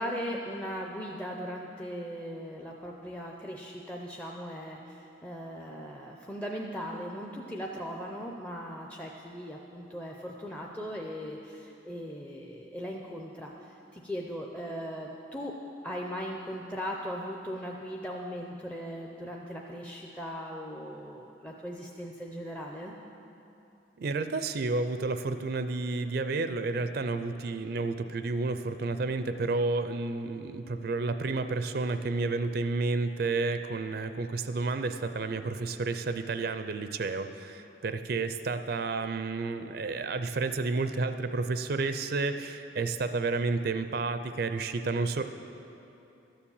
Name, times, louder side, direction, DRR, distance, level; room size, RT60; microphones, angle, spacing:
voice 1, 0.0-15.6 15.8-22.9, equal, 5° left, -1 dB, 0.5 m, -38 dB
voice 2, 24.0-45.2, right 3 dB, 55° right, 9 dB, 0.4 m, -31 dB
12.5 x 7.2 x 7.0 m, 2.8 s
head